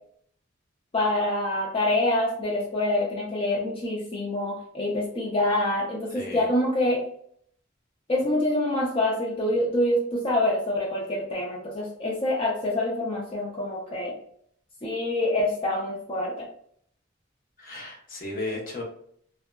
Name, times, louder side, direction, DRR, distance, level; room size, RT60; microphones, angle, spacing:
voice 1, 0.9-7.0 8.1-14.2 14.8-16.5, left 1 dB, 25° left, -2 dB, 0.4 m, -26 dB
voice 2, 6.1-6.5 17.6-18.8, left 2 dB, 45° left, -2 dB, 0.8 m, -35 dB
2.6 x 2.2 x 2.2 m, 0.63 s
head